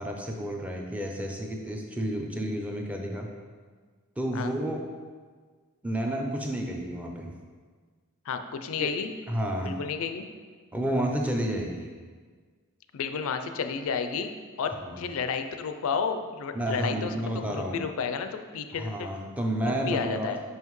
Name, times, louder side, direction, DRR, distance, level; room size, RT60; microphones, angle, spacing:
voice 1, 0.0-3.3 4.2-4.9 5.8-7.3 8.8-9.0 9.3-9.8 10.7-11.9 14.8-15.1 16.5-17.8 18.7-20.4, right 1 dB, 5° right, 1 dB, 0.5 m, -31 dB
voice 2, 8.3-9.1 9.6-10.2 12.9-14.3 14.6-17.1 17.5-19.1 19.7-20.4, left 6 dB, 65° left, 8 dB, 0.4 m, -31 dB
5.6 x 5.5 x 3.1 m, 1.5 s
head